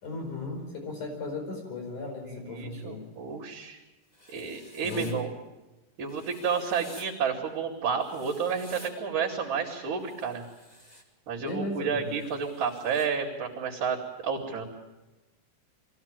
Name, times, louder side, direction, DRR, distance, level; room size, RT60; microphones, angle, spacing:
voice 1, 0.0-3.1 4.8-5.2 11.4-12.2, left 2 dB, 65° left, 2 dB, 6.4 m, -36 dB
voice 2, 2.3-3.8 4.3-5.3 6.0-10.4 11.3-14.7, right 6 dB, 70° right, -9 dB, 4.1 m, -31 dB
Writing, 4.1-5.1 6.1-7.1 8.0-8.9 10.0-11.0 12.1-13.1, equal, 15° left, 2.5 m, -51 dB
23.5 x 16.0 x 9.0 m, 1.1 s
omnidirectional pair, 3.8 m